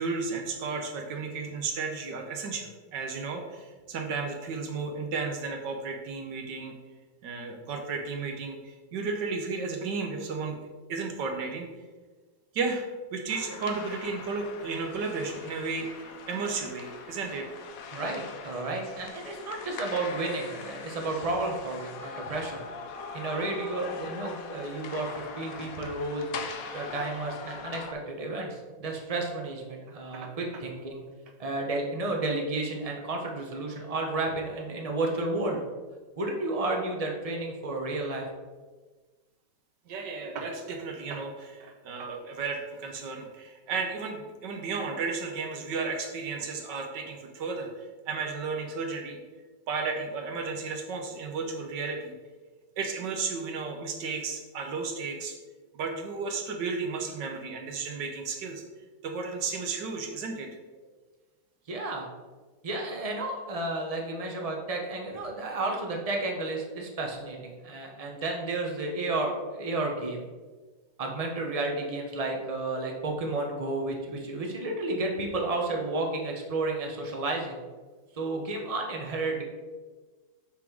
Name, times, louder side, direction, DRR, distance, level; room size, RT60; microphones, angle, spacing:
voice 1, 0.0-6.7 7.2-10.6 10.9-11.7 12.5-12.9 13.1-17.5 30.1-30.3 39.9-49.2 49.7-52.1 52.8-55.3 55.7-58.6 59.0-60.5, right 4 dB, 70° right, 3 dB, 1.4 m, -33 dB
sound 1, 13.3-27.9, left 5 dB, 70° left, 0.8 m, -42 dB
voice 2, 17.9-22.6 23.1-26.3 26.7-31.0 31.4-35.6 36.2-38.3 61.7-62.1 62.6-70.2 71.0-77.6 78.1-79.4, right 2 dB, 50° right, 1 dB, 0.4 m, -32 dB
7.2 x 3.7 x 4.6 m, 1.3 s
omnidirectional pair, 2.1 m